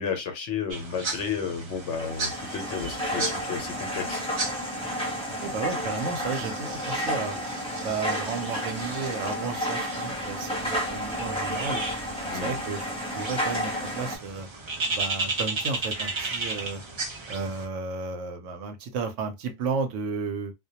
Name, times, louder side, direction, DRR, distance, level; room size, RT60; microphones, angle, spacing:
voice 1, 0.0-4.2 12.3-12.6, left 6 dB, 75° left, 1.0 m, -32 dB
sound 1, 0.7-17.6, right 3 dB, 40° right, 0.4 m, -35 dB
sound 2, 1.8-14.2, equal, 5° left, 0.8 m, -31 dB
voice 2, 5.4-7.4 7.8-11.8 12.3-14.5 14.9-16.8 17.3-20.5, right 4 dB, 80° right, 0.9 m, -33 dB
2.2 x 2.2 x 2.7 m
omnidirectional pair, 1.2 m